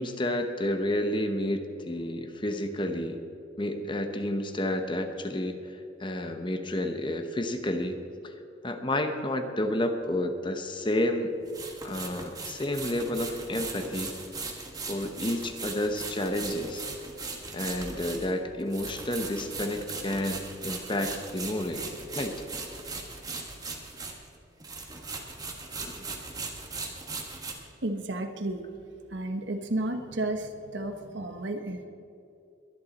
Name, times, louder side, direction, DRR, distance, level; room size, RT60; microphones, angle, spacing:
voice 1, 0.0-3.2 3.6-8.3 8.6-11.3 11.8-14.1 14.8-16.8 17.5-21.9 22.1-22.4 25.8-26.1, left 1 dB, 25° left, 7 dB, 0.9 m, -30 dB
sound 1, 10.0-10.1 11.5-24.4 24.6-27.5, right 4 dB, 20° right, 1.5 m, -39 dB
voice 2, 27.8-28.7 29.1-31.8, right 2 dB, 65° right, 6 dB, 1.1 m, -32 dB
21.5 x 11.5 x 4.1 m, 2.7 s
head